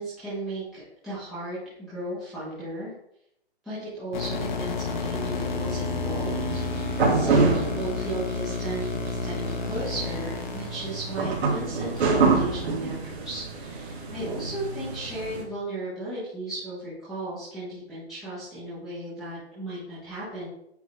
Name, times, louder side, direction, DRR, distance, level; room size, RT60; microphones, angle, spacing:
voice 1, 0.0-2.9 3.6-6.4 6.7-20.5, right 1 dB, ahead, -13 dB, 0.5 m, -35 dB
sound 1, 4.1-12.1, left 6 dB, 45° left, 0.7 m, -32 dB
sound 2, 4.3-15.4, right 4 dB, 75° right, 2.2 m, -28 dB
8.5 x 3.3 x 3.7 m, 0.76 s
hypercardioid pair, 170°, 32 cm